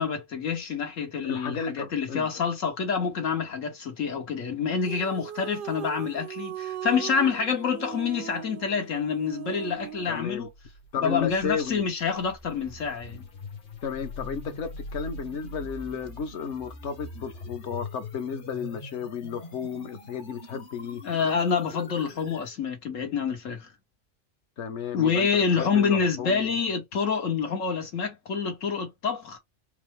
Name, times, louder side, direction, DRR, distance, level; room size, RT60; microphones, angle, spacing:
voice 1, 0.0-10.5 11.0-13.2 21.0-23.7 24.9-29.4, left 6 dB, 90° left, 1.6 m, -27 dB
voice 2, 1.2-2.3 10.1-10.5 10.9-11.8 13.8-21.0 24.6-25.3 25.6-26.5, left 6 dB, 65° left, 1.2 m, -33 dB
sound 1, 4.8-10.2, right 11 dB, 60° right, 0.6 m, -39 dB
sound 2, 10.4-22.5, left 2 dB, 45° left, 0.9 m, -43 dB
4.7 x 2.0 x 3.2 m
omnidirectional pair, 1.3 m